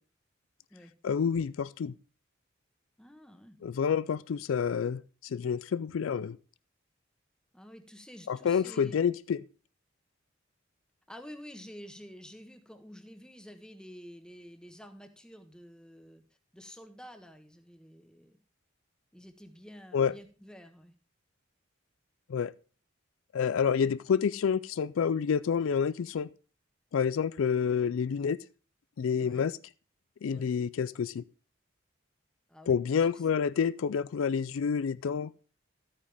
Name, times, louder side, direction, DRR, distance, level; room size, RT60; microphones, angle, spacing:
voice 1, 1.0-1.9 3.6-6.4 8.3-9.4 19.9-20.1 22.3-22.5 23.3-26.3 26.9-28.4 29.0-29.5 30.2-31.2 32.7-35.3, left 6 dB, 75° left, 0.4 m, -28 dB
voice 2, 3.0-3.6 7.5-9.0 11.1-16.2 16.5-18.4 19.1-20.9 29.2-29.5 30.3-30.5 32.5-33.2, equal, 5° left, 1.2 m, -50 dB
13.0 x 8.8 x 3.5 m
head